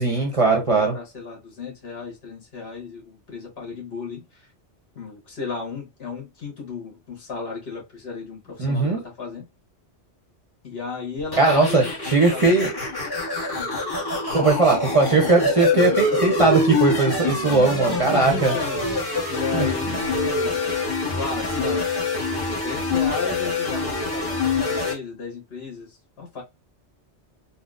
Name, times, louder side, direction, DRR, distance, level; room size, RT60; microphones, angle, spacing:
voice 1, 0.0-1.0 8.6-9.0 11.4-11.8 12.1-12.7 14.3-18.5 19.5-19.6, right 3 dB, 35° right, 0.7 m, -19 dB
voice 2, 0.6-4.5 5.0-9.4 10.6-11.9 12.3-12.6 13.5-13.7 18.1-18.8 19.3-20.7 21.0-21.8 22.6-26.4, left 4 dB, 60° left, 1.6 m, -34 dB
sound 1, 11.3-24.9, left 3 dB, 20° left, 0.9 m, -25 dB
3.9 x 2.1 x 2.4 m
omnidirectional pair, 1.2 m